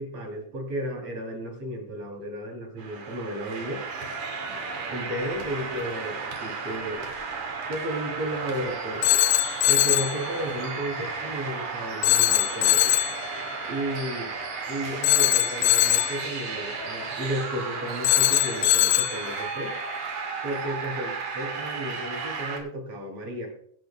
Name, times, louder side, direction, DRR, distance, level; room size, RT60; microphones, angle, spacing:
voice 1, 0.0-3.8 4.9-7.1 7.7-9.2 9.7-13.0 13.7-14.3 14.7-19.8 20.4-23.5, equal, 55° right, 2 dB, 4.2 m, -33 dB
sound 1, 2.8-22.6, right 4 dB, 75° right, 3.5 m, -34 dB
Telephone, 9.0-10.2 12.0-13.2 15.0-16.2 18.0-19.2, left 14 dB, 80° left, 1.6 m, -21 dB
22.5 x 10.5 x 2.3 m, 0.68 s
omnidirectional pair, 3.4 m